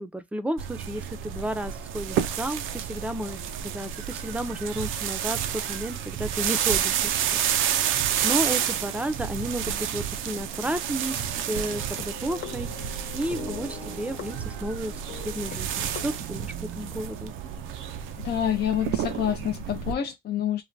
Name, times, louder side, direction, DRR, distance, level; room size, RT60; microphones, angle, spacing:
voice 1, 0.0-7.1 7.6-14.9 15.2-17.3, right 1 dB, 5° right, 0.4 m, -32 dB
sound 1, 0.6-19.9, right 9 dB, 85° right, 0.4 m, -30 dB
sound 2, 11.0-16.2, left 5 dB, 70° left, 1.0 m, -41 dB
voice 2, 18.2-20.6, left 9 dB, 55° left, 0.5 m, -27 dB
3.2 x 2.2 x 2.5 m
cardioid pair, 90°, 20 cm